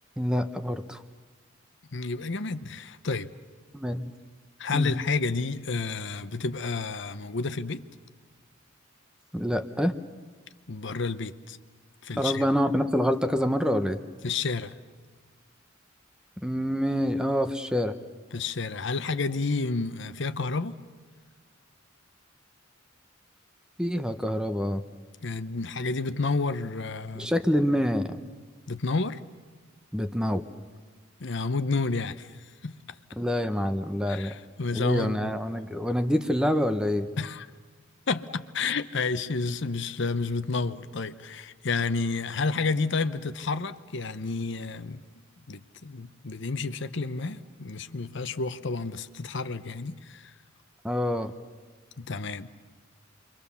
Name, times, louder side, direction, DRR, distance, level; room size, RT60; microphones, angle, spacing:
voice 1, 0.2-1.0 3.7-4.1 4.7-4.9 9.3-9.9 12.2-14.0 16.4-18.0 23.8-24.8 27.2-28.2 29.9-30.4 33.2-34.3 34.7-37.1 50.8-51.3, equal, 5° right, 0.8 m, -26 dB
voice 2, 1.9-3.3 4.6-7.8 10.7-11.6 12.0-12.5 14.2-14.7 18.3-20.8 25.2-27.3 28.7-29.2 31.2-32.3 32.6-32.8 34.1-35.3 37.2-37.5 38.1-45.0 45.5-50.3 52.0-52.5, left 4 dB, 60° left, 0.8 m, -30 dB
28.5 x 24.0 x 7.0 m
head